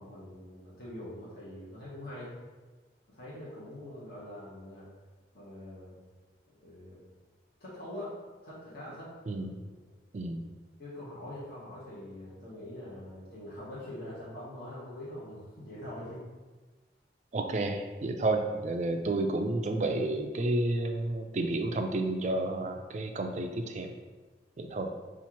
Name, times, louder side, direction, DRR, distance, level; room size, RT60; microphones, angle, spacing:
voice 1, 0.0-2.3 3.1-4.9 5.3-6.0 6.5-7.0 7.6-8.2 8.4-9.1 9.8-9.9 10.8-16.2, left 1 dB, 55° left, -9 dB, 1.2 m, -44 dB
voice 2, 9.3-9.6 10.1-10.4 17.3-23.9 24.6-24.9, right 2 dB, 40° right, 5 dB, 0.3 m, -31 dB
5.6 x 2.5 x 2.9 m, 1.3 s
head